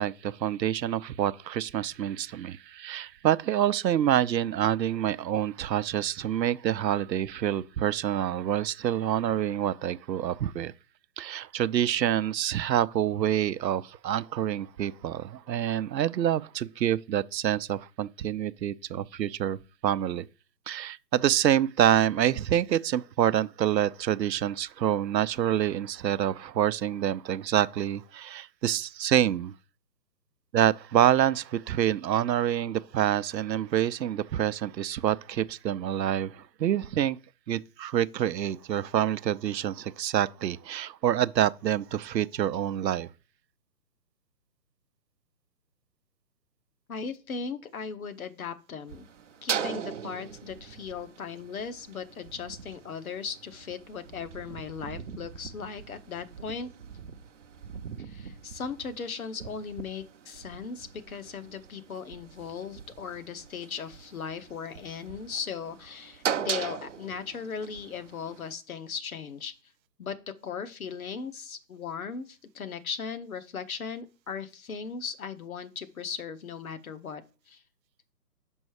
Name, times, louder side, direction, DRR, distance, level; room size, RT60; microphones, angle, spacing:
voice 1, 0.0-10.7 11.2-19.6 19.8-20.3 20.7-29.5 30.5-37.2 37.5-43.1, right 11 dB, 80° right, 0.6 m, -27 dB
voice 2, 46.9-49.0 49.4-56.7 58.0-69.5 70.0-70.1 70.4-77.6, left 6 dB, 55° left, 1.0 m, -38 dB
sound 1, 48.9-68.5, right 7 dB, 50° right, 0.7 m, -40 dB
5.4 x 5.4 x 4.8 m
hypercardioid pair, 160°, 49 cm